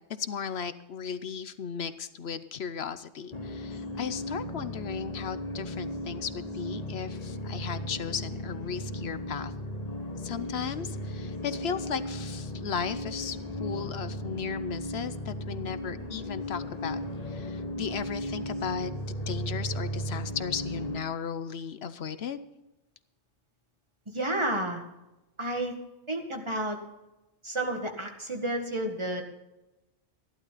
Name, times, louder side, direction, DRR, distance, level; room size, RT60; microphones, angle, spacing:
voice 1, 0.2-9.5 10.2-17.0 17.3-22.4, left 7 dB, 60° left, 13 dB, 0.9 m, -36 dB
sound 1, 3.3-21.0, left 1 dB, 35° left, 1.2 m, -36 dB
voice 2, 24.1-24.8 25.4-25.7 26.1-26.8 27.4-29.2, right 1 dB, 25° right, 3 dB, 1.9 m, -31 dB
14.5 x 11.5 x 4.1 m, 0.97 s
omnidirectional pair, 1.2 m